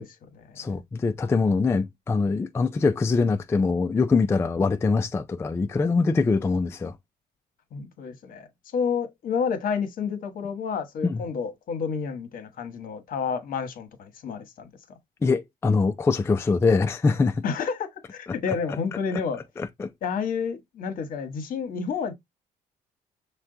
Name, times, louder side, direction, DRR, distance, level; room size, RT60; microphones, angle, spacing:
voice 1, 0.0-0.7 7.7-14.7 17.4-19.4 20.0-22.1, left 6 dB, 55° left, 1.1 m, -30 dB
voice 2, 0.6-6.9 11.0-11.2 15.2-17.4 18.7-18.8 19.6-19.9, left 4 dB, 15° left, 0.3 m, -23 dB
5.8 x 2.2 x 3.7 m
cardioid pair, 110°, 17 cm